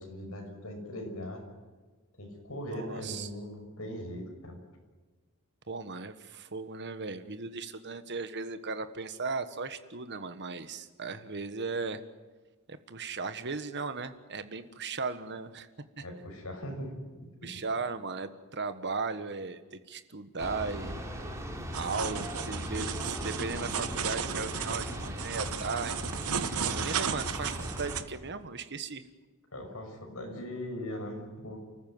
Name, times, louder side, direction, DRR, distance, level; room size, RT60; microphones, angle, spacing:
voice 1, 0.0-1.4 2.2-4.6 16.0-16.9 17.2-17.5 29.5-31.6, left 1 dB, 70° left, 2 dB, 6.1 m, -40 dB
voice 2, 2.7-3.3 5.7-12.0 12.7-15.7 16.0-16.1 17.4-21.0 21.8-26.0 26.4-29.0, right 4 dB, 50° right, 11 dB, 1.4 m, -37 dB
sound 1, 20.4-28.0, equal, 15° right, 3.3 m, -38 dB
sound 2, 21.7-28.0, right 7 dB, 75° right, 1.2 m, -35 dB
30.0 x 14.5 x 9.5 m, 1.3 s
head